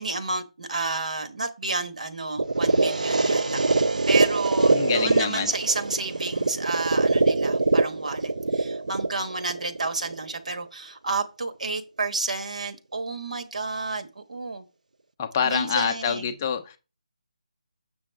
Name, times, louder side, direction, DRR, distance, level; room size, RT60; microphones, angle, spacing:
voice 1, 0.0-3.6 4.1-14.6 15.4-16.4, right 3 dB, 70° right, 1.3 m, -31 dB
sound 1, 2.4-10.4, right 3 dB, 90° right, 0.6 m, -23 dB
voice 2, 4.7-5.5 15.2-16.8, left 7 dB, 20° left, 0.6 m, -26 dB
7.0 x 6.2 x 3.4 m
figure-of-eight pair, 170°, 4 cm